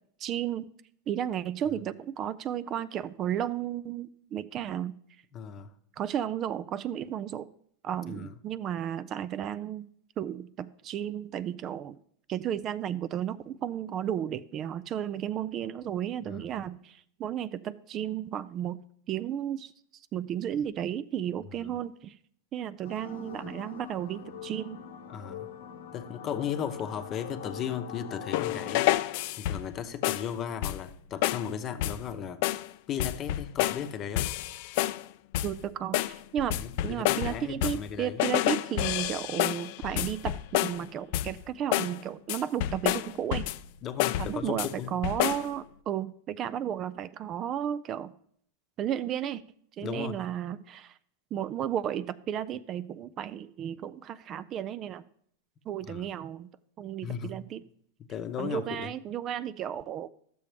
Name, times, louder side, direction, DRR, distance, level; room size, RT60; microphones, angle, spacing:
voice 1, 0.2-0.6 1.1-4.9 5.9-7.5 7.8-9.9 10.2-12.0 12.3-18.8 19.1-22.2 22.5-24.8 35.4-43.5 44.2-48.1 48.8-49.4 49.8-51.0 51.3-55.0 55.7-56.5 56.8-57.6 58.4-60.1, right 10 dB, 40° right, 15 dB, 0.3 m, -33 dB
voice 2, 5.3-5.7 8.1-8.3 16.3-16.6 21.5-21.7 25.1-25.5 25.9-29.0 29.3-32.4 32.9-34.3 36.5-38.2 43.8-44.9 49.8-50.2 55.9-56.1 57.0-57.3 58.1-58.9, left 8 dB, 35° left, 8 dB, 0.8 m, -36 dB
sound 1, 22.8-28.8, left 8 dB, 80° left, 0.8 m, -43 dB
sound 2, 28.3-29.7 30.0-30.3 30.6-30.9 31.2-31.5 31.8-32.1 32.4-32.7 33.0-33.9 34.2-35.0 35.3-35.6 35.9-37.9 38.2-40.8 41.1-41.4 41.7-42.0 42.3-43.7 44.0-44.7 45.0-45.5, left 15 dB, 60° left, 0.3 m, -29 dB
12.5 x 6.9 x 3.4 m, 0.65 s
hypercardioid pair, 110°, 0 cm